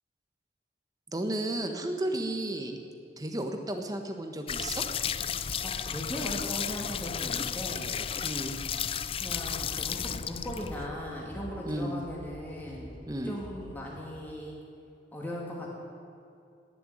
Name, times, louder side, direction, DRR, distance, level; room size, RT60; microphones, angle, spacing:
voice 1, 1.1-2.8 3.2-4.8 8.2-8.6 11.6-11.9 13.1-13.4, right 1 dB, 20° right, 5 dB, 1.3 m, -33 dB
sound 1, 4.5-10.9, left 8 dB, 30° left, 0.4 m, -33 dB
voice 2, 5.6-7.9 9.2-12.9 13.2-14.6 15.1-15.7, equal, 10° left, -4 dB, 2.6 m, -38 dB
sound 2, 9.2-14.3, equal, 45° left, 2.3 m, -48 dB
18.5 x 7.0 x 9.9 m, 2.6 s
head